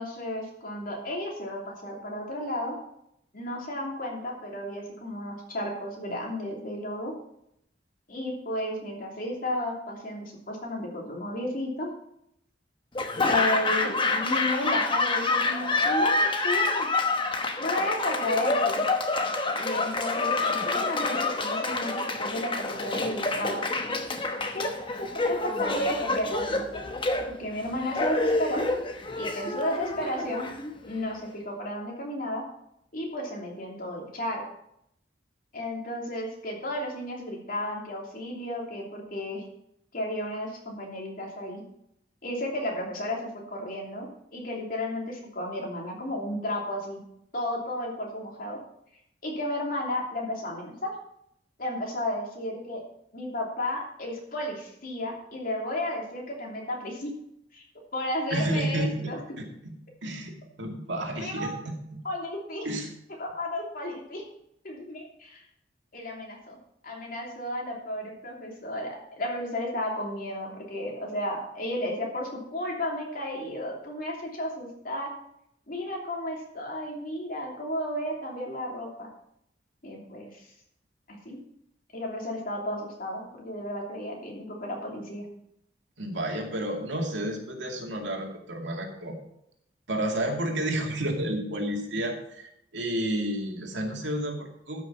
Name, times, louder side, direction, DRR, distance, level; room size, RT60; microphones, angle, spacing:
voice 1, 0.0-2.8 3.3-7.1 8.1-11.9 13.2-16.9 17.6-18.8 19.6-23.9 24.5-26.6 27.3-28.6 29.2-30.5 30.8-32.4 32.9-34.4 35.5-39.4 39.9-41.6 42.2-47.0 47.3-48.6 49.2-50.9 51.6-52.8 53.1-57.1 57.5-57.6 57.9-59.2 61.2-61.5 62.0-62.6 63.2-64.2 64.6-65.4 65.9-66.6 66.8-75.1 75.7-79.1 79.8-80.3 81.1-81.4 81.9-85.2, left 1 dB, 50° left, -1 dB, 3.0 m, -33 dB
Laughter / Applause, 12.9-31.0, left 3 dB, 30° left, 1.0 m, -27 dB
voice 2, 58.3-59.7 60.0-62.0 62.6-62.9 86.0-89.2 89.9-94.8, right 1 dB, 80° right, 2 dB, 2.3 m, -31 dB
13.0 x 6.2 x 5.8 m, 0.75 s
head